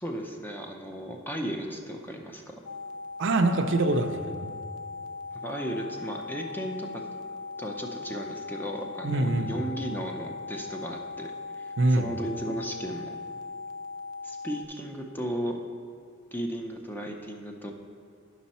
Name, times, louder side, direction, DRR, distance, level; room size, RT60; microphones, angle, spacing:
voice 1, 0.0-2.6 5.4-7.0 7.6-13.2 14.2-15.6 16.3-17.7, equal, 10° left, 1 dB, 0.6 m, -35 dB
sound 1, 2.7-14.7, left 4 dB, 90° left, 0.5 m, -39 dB
voice 2, 3.2-4.5 9.0-9.5 11.8-12.1, right 2 dB, 55° right, 6 dB, 0.5 m, -24 dB
9.2 x 6.2 x 4.2 m, 2.1 s
head